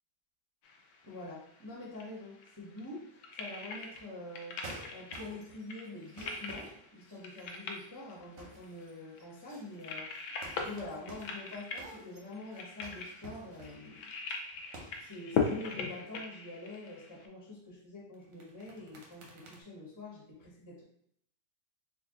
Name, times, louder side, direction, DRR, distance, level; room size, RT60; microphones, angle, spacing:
sound 1, 0.6-17.3, left 5 dB, 70° left, 1.0 m, -40 dB
voice 1, 1.0-4.6 4.9-14.1 14.5-14.7 15.0-20.8, left 2 dB, 15° left, -7 dB, 0.7 m, -46 dB
sound 2, 4.6-5.6 6.0-7.9 8.2-8.9 9.2-14.1 14.6-15.1 15.3-15.7 18.1-19.6, right 2 dB, 85° right, 1.5 m, -51 dB
3.7 x 2.3 x 3.7 m, 0.69 s
omnidirectional pair, 2.0 m